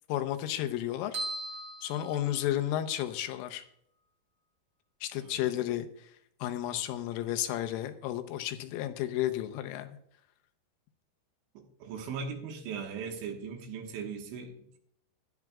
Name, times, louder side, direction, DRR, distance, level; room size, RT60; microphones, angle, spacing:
voice 1, 0.1-1.2 1.8-3.6 5.0-5.9 6.4-9.9, left 12 dB, 85° left, 8 dB, 3.4 m, -32 dB
sound 1, 1.1-2.9, right 1 dB, 55° right, 1.2 m, -39 dB
voice 2, 11.6-14.8, right 6 dB, 75° right, 3 dB, 3.6 m, -39 dB
16.5 x 12.0 x 2.4 m, 0.70 s
omnidirectional pair, 5.8 m